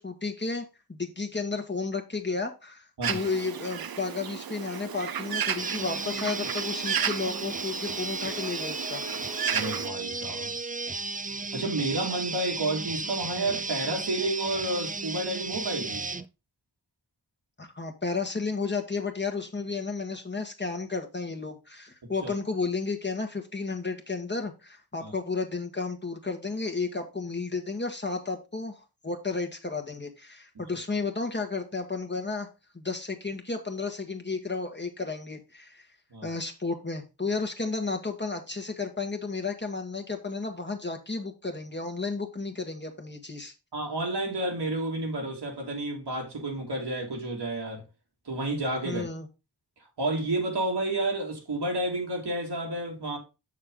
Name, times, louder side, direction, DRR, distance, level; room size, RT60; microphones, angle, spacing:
voice 1, 0.0-9.0 17.6-32.5 32.7-35.9 36.2-43.5 48.8-49.3, left 4 dB, 25° left, 1.6 m, -32 dB
Bird, 3.0-9.9, right 8 dB, 65° right, 0.6 m, -33 dB
sound 1, 5.6-16.2, right 3 dB, 20° right, 0.5 m, -34 dB
voice 2, 9.5-10.5 11.5-16.0 22.0-22.3 25.0-25.1 36.1-36.3 43.7-47.8 48.3-49.0 50.0-53.2, right 2 dB, 85° right, 2.5 m, -30 dB
7.0 x 6.5 x 3.8 m
wide cardioid pair, 70°, 39 cm